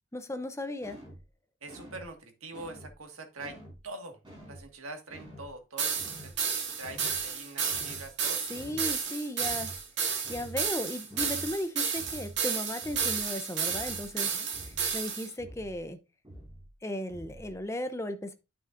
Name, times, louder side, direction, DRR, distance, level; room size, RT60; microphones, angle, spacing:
voice 1, 0.1-1.0 8.5-9.7 10.3-16.0 16.8-18.3, left 1 dB, 15° left, 0.6 m, -36 dB
sound 1, 0.8-1.2 1.7-2.1 2.5-3.0 3.4-3.8 4.2-4.7 5.1-5.5 6.0-6.4 6.8-7.2 7.7-8.1 8.5-9.0 9.4-9.8 10.2-10.7 11.1-11.5 12.0-12.4 12.8-13.2 13.7-14.1 14.5-15.0 15.4-15.8 16.2-16.7 17.1-17.6, right 1 dB, 25° right, 4.6 m, -47 dB
voice 2, 1.6-4.2 4.5-6.3 6.8-8.4 14.2-14.5, right 2 dB, 85° right, 1.7 m, -44 dB
sound 2, 5.8-15.3, right 6 dB, 55° right, 2.1 m, -32 dB
9.4 x 6.3 x 2.5 m
head